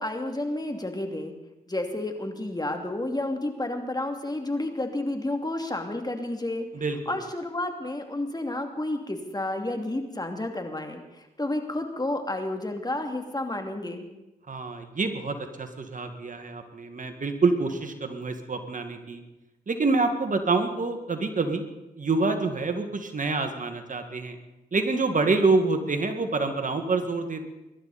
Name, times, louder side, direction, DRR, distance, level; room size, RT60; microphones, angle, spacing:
voice 1, 0.0-1.3 1.7-6.7 7.1-14.1, left 1 dB, 25° left, 4 dB, 2.7 m, -31 dB
voice 2, 6.7-7.2 14.5-19.2 19.7-24.4 24.7-27.5, right 3 dB, 50° right, 7 dB, 2.0 m, -27 dB
23.0 x 12.0 x 4.3 m, 0.99 s
cardioid pair, 45°, 17 cm